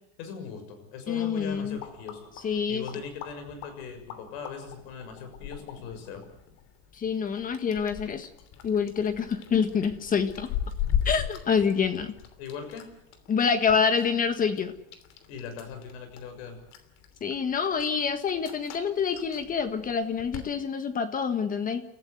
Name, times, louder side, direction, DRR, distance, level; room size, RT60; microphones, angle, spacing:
voice 1, 0.2-6.2 12.4-12.8 15.3-16.6, left 6 dB, 70° left, 7 dB, 6.7 m, -40 dB
voice 2, 1.1-1.8 2.4-2.8 6.9-8.3 8.6-10.5 11.0-12.2 13.3-14.7 17.2-21.8, left 6 dB, 25° left, 9 dB, 1.6 m, -27 dB
sound 1, 1.3-20.5, left 9 dB, 50° left, 3.1 m, -39 dB
29.5 x 14.5 x 8.1 m, 0.81 s
supercardioid pair, 135°, 33 cm